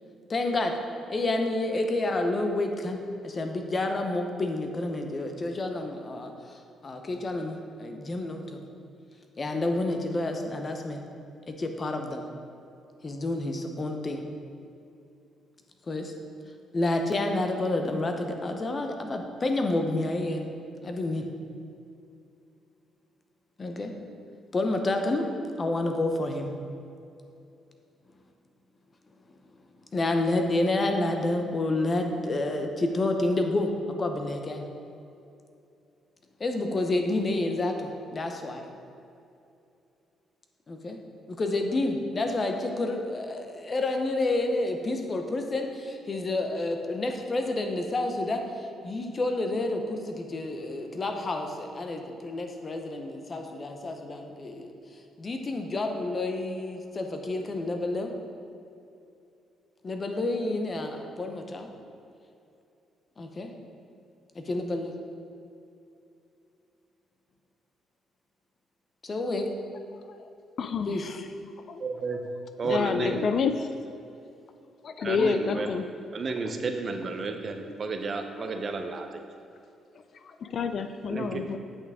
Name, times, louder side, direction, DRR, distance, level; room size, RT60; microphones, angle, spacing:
voice 1, 0.3-0.8 1.1-3.0 3.2-8.6 9.4-11.0 11.5-12.3 13.0-14.2 15.9-16.1 16.7-20.5 20.8-21.3 23.6-23.9 24.5-25.3 25.6-26.5 29.9-33.7 34.0-34.7 36.4-38.6 40.7-41.0 41.3-48.5 48.8-54.7 55.2-58.1 59.8-61.7 63.2-63.5 64.3-64.9 69.0-69.5 70.9-71.1 72.7-72.8, left 2 dB, 35° left, 4 dB, 0.8 m, -29 dB
voice 2, 70.6-71.2 71.7-71.8 72.6-73.7 74.8-75.8 80.2-81.6, left 5 dB, 55° left, 8 dB, 0.4 m, -28 dB
voice 3, 71.8-72.2 72.6-73.3 75.0-75.7 76.1-79.2 81.1-81.4, right 4 dB, 45° right, 5 dB, 0.7 m, -32 dB
8.2 x 5.9 x 3.6 m, 2.7 s
cardioid pair, 90°, 0 cm